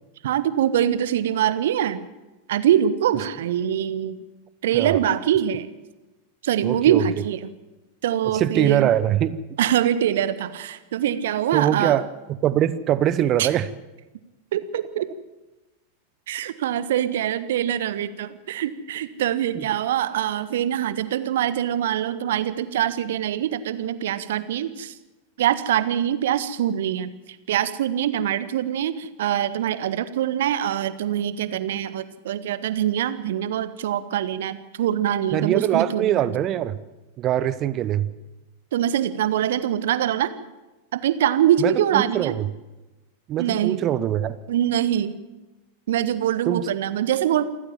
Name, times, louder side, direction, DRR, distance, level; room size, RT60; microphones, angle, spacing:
voice 1, 0.2-2.0 2.5-4.2 4.6-5.7 6.4-7.5 8.0-9.0 9.6-12.0 13.4-13.5 14.5-15.1 16.3-24.9 25.4-27.1 27.5-36.3 38.7-40.3 40.9-42.3 43.4-43.9 44.5-45.2 45.9-47.4, right 10 dB, 55° right, 14 dB, 1.4 m, -23 dB
voice 2, 6.6-7.0 8.2-9.4 11.5-12.1 12.4-13.7 19.5-19.6 35.3-36.8 37.2-38.1 41.6-42.3 43.3-44.4 46.5-46.7, right 11 dB, 35° right, 16 dB, 0.9 m, -22 dB
27.5 x 15.0 x 7.5 m, 1.1 s
figure-of-eight pair, 90°, 0 cm